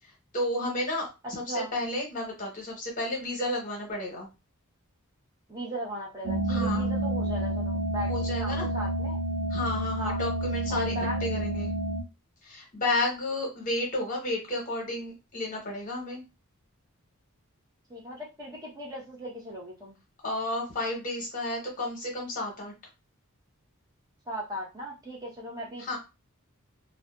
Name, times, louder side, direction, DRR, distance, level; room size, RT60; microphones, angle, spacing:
voice 1, 0.3-4.3 6.5-6.9 8.1-8.7 9.5-10.9 11.2-11.7 12.4-16.2 20.2-22.7 25.8-26.0, left 1 dB, 35° left, -1 dB, 1.1 m, -32 dB
voice 2, 5.5-9.2 10.0-10.2 10.7-11.3 17.9-20.0 24.3-26.0, equal, 15° right, -3 dB, 0.8 m, -37 dB
sound 1, 6.2-12.0, right 1 dB, 65° right, 0.5 m, -29 dB
2.5 x 2.4 x 2.3 m, 0.26 s
head